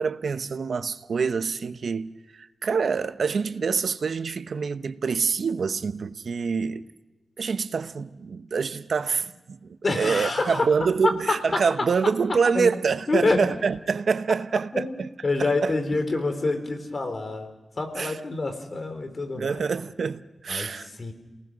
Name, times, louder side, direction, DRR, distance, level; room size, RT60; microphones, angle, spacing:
voice 1, 0.0-6.8 7.4-15.1 15.4-15.7 18.0-18.2 19.3-20.9, right 5 dB, 75° right, 0.9 m, -26 dB
voice 2, 9.8-10.7 11.3-11.4 12.5-12.7 13.1-13.4 14.7-15.0 15.2-19.7 20.5-21.1, left 3 dB, 50° left, 3.7 m, -27 dB
28.0 x 19.0 x 6.3 m
cardioid pair, 65°, 0 cm